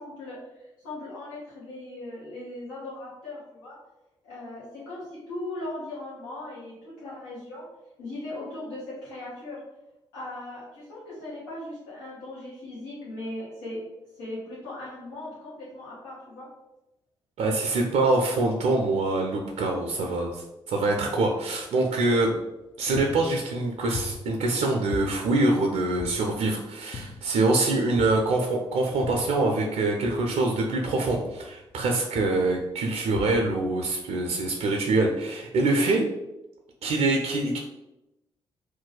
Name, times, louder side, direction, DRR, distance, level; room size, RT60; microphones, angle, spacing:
voice 1, 0.0-3.8 4.2-7.7 8.0-9.6 10.1-13.8 14.1-16.5, left 2 dB, 85° left, -9 dB, 0.9 m, -38 dB
voice 2, 17.4-22.3 22.8-36.1 36.8-37.6, right 2 dB, 70° right, 1 dB, 0.5 m, -25 dB
sound 1, 22.5-22.6 23.0-24.6 24.9-26.5 26.9-27.5 28.0-29.5 30.0-31.8 32.2-32.6 33.1-33.8, left 3 dB, 45° left, 0.5 m, -40 dB
2.5 x 2.1 x 3.9 m, 0.94 s
hypercardioid pair, 40°, 12 cm